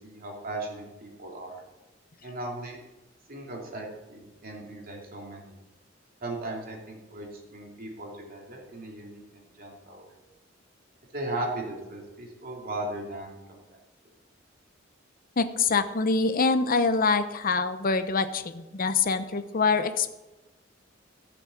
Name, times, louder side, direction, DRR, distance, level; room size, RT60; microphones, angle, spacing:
voice 1, 0.0-1.6 2.2-2.8 3.3-5.6 6.2-10.1 11.1-13.8, right 2 dB, 50° right, 0 dB, 3.0 m, -37 dB
voice 2, 15.4-20.1, left 4 dB, 45° left, 10 dB, 0.7 m, -25 dB
15.0 x 6.9 x 7.1 m, 1.1 s
head